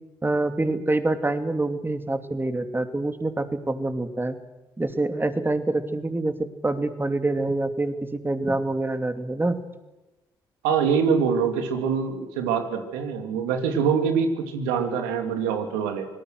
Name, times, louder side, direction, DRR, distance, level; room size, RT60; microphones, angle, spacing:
voice 1, 0.2-4.4 4.8-9.6, right 2 dB, 20° right, 9 dB, 2.8 m, -26 dB
voice 2, 10.6-16.1, right 6 dB, 85° right, 7 dB, 2.6 m, -24 dB
25.5 x 19.0 x 6.3 m, 1.1 s
hypercardioid pair, 45°, 11 cm